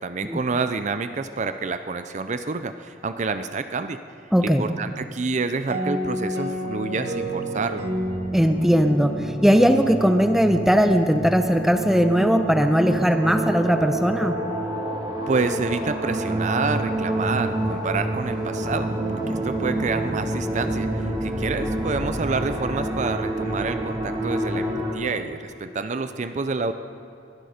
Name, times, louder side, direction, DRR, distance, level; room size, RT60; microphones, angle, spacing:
voice 1, 0.0-4.0 4.4-7.8 15.3-26.7, right 4 dB, 40° right, 10 dB, 0.5 m, -28 dB
voice 2, 4.3-4.7 8.3-14.4, equal, ahead, 7 dB, 0.7 m, -19 dB
sound 1, 5.7-10.3, equal, 80° right, 2.7 m, -30 dB
sound 2, 7.5-24.9, right 1 dB, 25° right, 1.8 m, -28 dB
22.0 x 12.0 x 5.1 m, 2.8 s
head